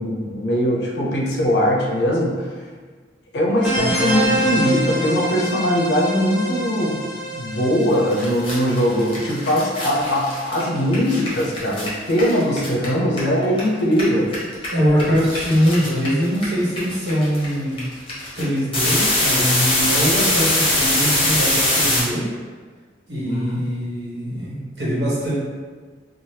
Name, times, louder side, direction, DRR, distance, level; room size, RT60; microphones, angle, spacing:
voice 1, 0.0-2.5 3.3-7.0 7.3-14.4 23.2-23.6, equal, 70° left, -2 dB, 0.6 m, -21 dB
sound 1, 3.6-10.9, right 1 dB, 5° right, 0.6 m, -27 dB
sound 2, 7.8-7.9 8.1-13.6 13.9-22.0, left 1 dB, 30° left, 0.7 m, -22 dB
voice 2, 14.7-17.8 18.4-22.3 23.1-25.3, equal, 65° right, -8 dB, 1.0 m, -22 dB
2.7 x 2.0 x 3.2 m, 1.5 s
head